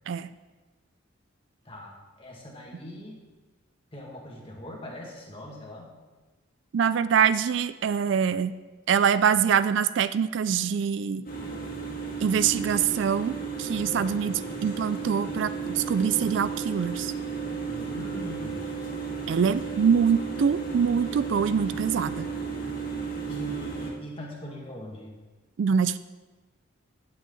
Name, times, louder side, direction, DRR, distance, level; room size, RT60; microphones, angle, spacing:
voice 1, 1.6-3.2 3.9-5.9 17.6-18.8 23.0-25.2, equal, 25° left, -2 dB, 2.0 m, -41 dB
voice 2, 6.7-8.6 8.9-11.2 12.2-17.1 19.3-22.3 25.6-26.0, right 7 dB, 60° right, 14 dB, 0.3 m, -24 dB
sound 1, 11.2-23.9, right 5 dB, 45° left, 2.2 m, -34 dB
16.5 x 7.7 x 3.9 m, 1.2 s
head